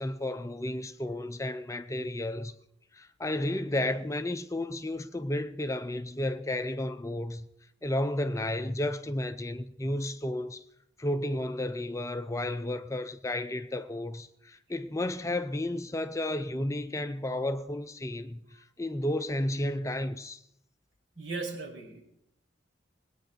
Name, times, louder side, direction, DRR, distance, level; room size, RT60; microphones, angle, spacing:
voice 1, 0.0-2.5 2.9-7.5 7.8-10.6 11.0-20.4, left 1 dB, 15° left, 0.5 m, -32 dB
voice 2, 21.2-22.0, right 3 dB, 75° right, 5.3 m, -37 dB
20.5 x 9.0 x 5.2 m
head